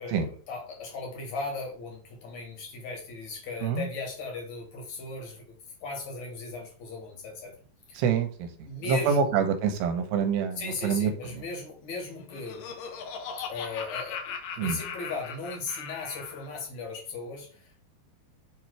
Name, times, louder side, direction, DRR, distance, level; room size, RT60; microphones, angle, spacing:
voice 1, 0.0-5.4 5.8-7.6 7.9-8.0 8.7-9.4 10.6-12.7 13.5-17.7, left 3 dB, 55° left, 0 dB, 2.2 m, -37 dB
voice 2, 8.0-8.5 8.9-11.1 14.6-14.8, right 6 dB, 80° right, 7 dB, 2.8 m, -26 dB
Laughter, 12.0-16.5, left 6 dB, 75° left, 2.1 m, -39 dB
7.2 x 3.0 x 4.6 m, 0.43 s
omnidirectional pair, 4.9 m